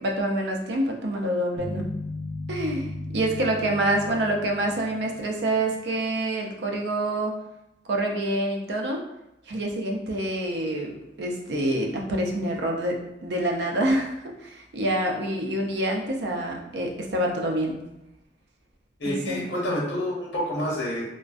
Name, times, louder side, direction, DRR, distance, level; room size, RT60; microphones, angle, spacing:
voice 1, 0.0-1.9 2.5-7.4 7.9-9.0 9.5-17.8 19.0-19.4, right 1 dB, 75° right, 1 dB, 0.4 m, -27 dB
sound 1, 1.6-5.8, left 1 dB, 45° left, 0.5 m, -36 dB
voice 2, 19.0-21.0, equal, 90° left, -4 dB, 0.9 m, -28 dB
2.4 x 2.1 x 2.3 m, 0.88 s
head